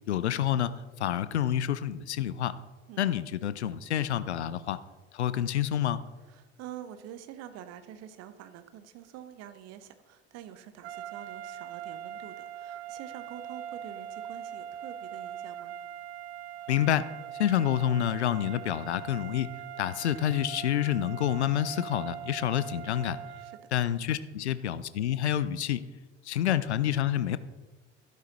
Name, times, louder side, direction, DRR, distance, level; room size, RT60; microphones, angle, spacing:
voice 1, 0.1-2.6 3.0-4.8 5.1-6.0 16.7-17.1 17.4-19.5 19.8-23.2 23.7-25.9 26.2-27.4, left 10 dB, 80° left, 16 dB, 0.5 m, -28 dB
voice 2, 6.3-15.8 23.4-23.6, right 10 dB, 50° right, 11 dB, 0.9 m, -46 dB
sound 1, 10.8-23.7, right 9 dB, 70° right, 0.5 m, -42 dB
12.5 x 11.0 x 2.9 m, 1.3 s
figure-of-eight pair, 60°, 33 cm